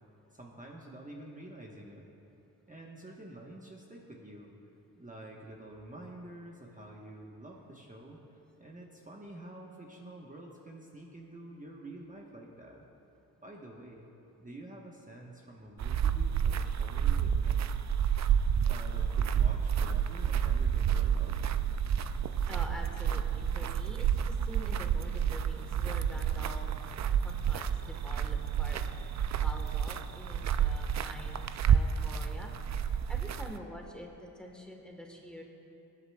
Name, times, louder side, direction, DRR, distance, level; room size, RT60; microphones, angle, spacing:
voice 1, 0.3-2.1 2.7-4.5 4.9-8.2 8.6-12.8 13.4-14.1 14.4-18.0 18.6-21.4, right 1 dB, 20° right, -2 dB, 1.1 m, -48 dB
sound 1, 15.8-33.6, right 8 dB, 50° right, 0.4 m, -30 dB
voice 2, 22.5-26.7 27.2-28.8 29.4-35.4, equal, ahead, 1 dB, 1.3 m, -46 dB
19.5 x 8.0 x 2.3 m, 2.9 s
cardioid pair, 65°, 37 cm